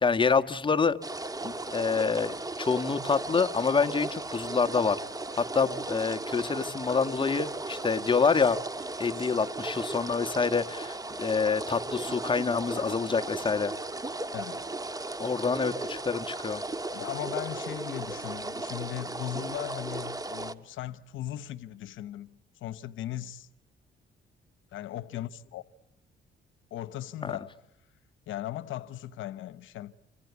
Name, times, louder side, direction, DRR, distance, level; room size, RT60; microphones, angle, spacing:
voice 1, 0.0-1.0 1.4-5.0 5.4-8.6 9.0-13.7 15.2-16.6 27.2-27.4, left 5 dB, 25° left, 1.4 m, -27 dB
sound 1, 1.0-20.5, right 2 dB, 20° right, 1.4 m, -36 dB
voice 2, 14.3-14.7 16.9-23.5 24.7-25.6 26.7-27.6 28.3-29.9, left 13 dB, 80° left, 1.0 m, -38 dB
28.0 x 25.5 x 8.2 m
cardioid pair, 90°, 20 cm